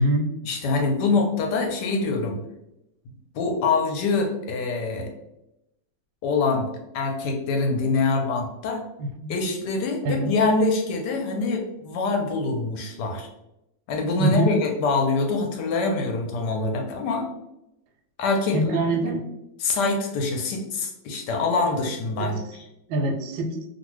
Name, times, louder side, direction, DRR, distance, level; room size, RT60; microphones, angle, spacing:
voice 1, 0.4-2.4 3.3-5.1 6.2-6.7 6.9-8.8 9.3-13.3 13.9-17.3 18.2-18.6 19.6-22.7, left 3 dB, 75° left, 3 dB, 1.1 m, -24 dB
voice 2, 9.0-9.3 10.0-10.3 14.2-14.5 18.5-19.2 22.2-22.3 22.9-23.5, right 1 dB, 90° right, 5 dB, 1.3 m, -23 dB
2.7 x 2.6 x 3.0 m, 0.88 s
omnidirectional pair, 2.0 m